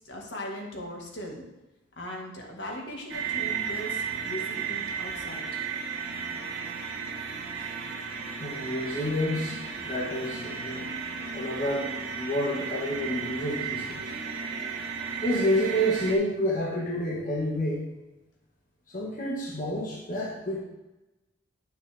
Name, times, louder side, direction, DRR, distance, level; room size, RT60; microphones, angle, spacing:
voice 1, 0.1-1.4 2.0-5.5, equal, 70° left, -1 dB, 1.7 m, -39 dB
sound 1, 3.1-16.1, right 6 dB, 80° right, 1.3 m, -34 dB
voice 2, 8.4-10.9 11.3-14.1 15.2-17.9 18.9-20.6, equal, 45° left, -4 dB, 1.4 m, -29 dB
9.9 x 6.6 x 3.4 m, 1.0 s
head